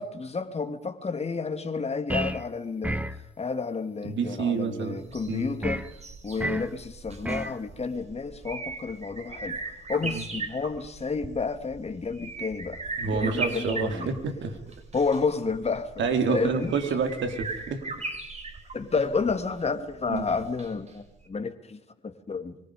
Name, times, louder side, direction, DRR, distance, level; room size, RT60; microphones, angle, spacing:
voice 1, 0.0-3.1 3.4-5.9 6.2-14.2 14.9-16.7 18.7-22.6, left 4 dB, 30° left, 7 dB, 2.6 m, -31 dB
sound 1, 2.1-2.5 2.8-3.2 5.6-5.9 6.4-6.7 7.2-7.6, right 1 dB, 5° right, 1.1 m, -30 dB
voice 2, 4.0-5.0 5.3-5.5 10.1-10.2 13.0-14.6 16.0-17.8 20.1-20.2, right 5 dB, 70° right, 5 dB, 4.0 m, -28 dB
sound 2, 5.0-20.9 21.2-21.3, right 3 dB, 35° right, 5.1 m, -39 dB
25.5 x 25.0 x 5.2 m, 0.77 s
cardioid pair, 90°, 20 cm